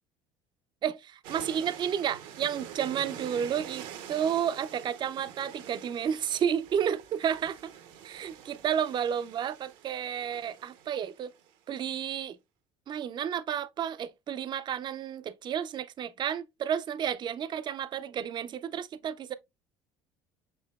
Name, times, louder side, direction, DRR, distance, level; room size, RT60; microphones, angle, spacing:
voice 1, 0.8-7.7 8.0-11.3 11.7-12.4 12.9-19.3, right 8 dB, 40° right, 0.4 m, -31 dB
sound 1, 1.2-11.5, right 9 dB, 75° right, 0.7 m, -46 dB
6.7 x 2.7 x 2.2 m
supercardioid pair, 80°, 12 cm